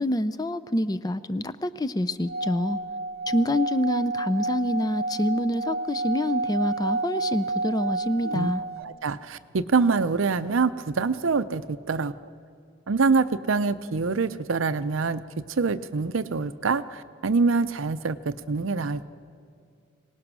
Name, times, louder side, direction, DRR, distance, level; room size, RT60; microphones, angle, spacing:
voice 1, 0.0-2.8 3.3-8.6, left 1 dB, 20° left, 14 dB, 0.4 m, -26 dB
Singing / Glass, 2.2-8.8, right 3 dB, 50° right, 0.7 m, -30 dB
voice 2, 8.8-12.1 12.9-15.2 15.5-19.1, right 4 dB, 85° right, 13 dB, 0.6 m, -25 dB
24.5 x 18.5 x 6.2 m, 2.3 s
head